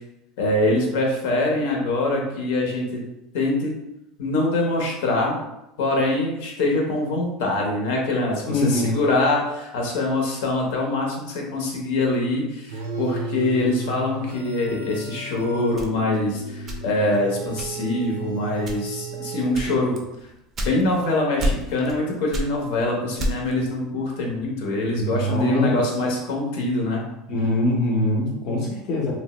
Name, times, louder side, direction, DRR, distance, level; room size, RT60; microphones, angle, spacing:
voice 1, 0.4-3.0 3.3-3.7 4.2-5.4 5.8-20.0 20.6-27.0, left 2 dB, 75° left, 0 dB, 0.8 m, -24 dB
voice 2, 8.5-9.0 25.0-26.1 27.3-29.1, left 1 dB, 40° left, -3 dB, 0.6 m, -23 dB
sound 1, 12.7-20.2, right 3 dB, 90° right, 0.4 m, -34 dB
sound 2, 15.8-17.1 17.6-18.0 18.6-19.1 19.5-21.1 21.4-22.0 22.3-23.6, equal, 25° right, 0.4 m, -29 dB
2.9 x 2.0 x 2.9 m, 0.90 s
supercardioid pair, 160°, 0 cm